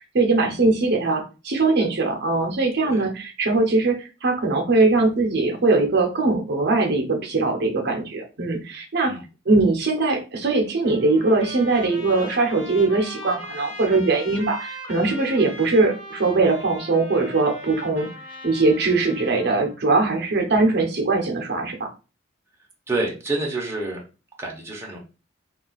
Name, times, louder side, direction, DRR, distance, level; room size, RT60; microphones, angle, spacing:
voice 1, 0.1-9.1 9.5-18.1 18.4-21.9, right 3 dB, 60° right, 2 dB, 0.6 m, -21 dB
Trumpet, 10.8-19.8, left 1 dB, 35° left, 1.3 m, -39 dB
voice 2, 22.9-24.0 24.4-25.0, right 2 dB, 15° right, -2 dB, 0.7 m, -28 dB
2.4 x 2.3 x 3.9 m, 0.32 s
head